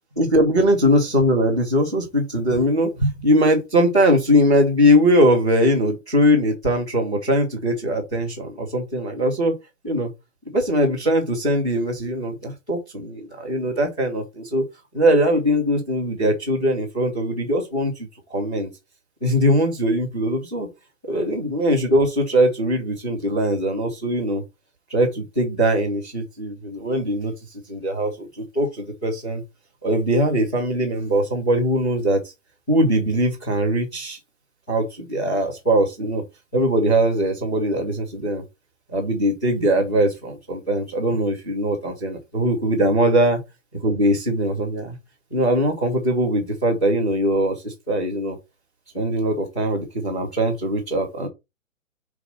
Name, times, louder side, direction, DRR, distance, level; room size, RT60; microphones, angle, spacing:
voice 1, 0.2-9.5 9.8-10.1 10.5-14.6 14.9-18.7 19.2-20.7 21.0-24.4 24.9-27.3 27.7-29.4 29.8-32.2 32.7-34.2 34.7-36.2 36.5-38.4 38.9-43.4 43.8-45.0 45.3-48.4 48.9-51.3, equal, 5° left, 0.5 m, -21 dB
5.9 x 4.0 x 5.4 m
hypercardioid pair, 160°, 40 cm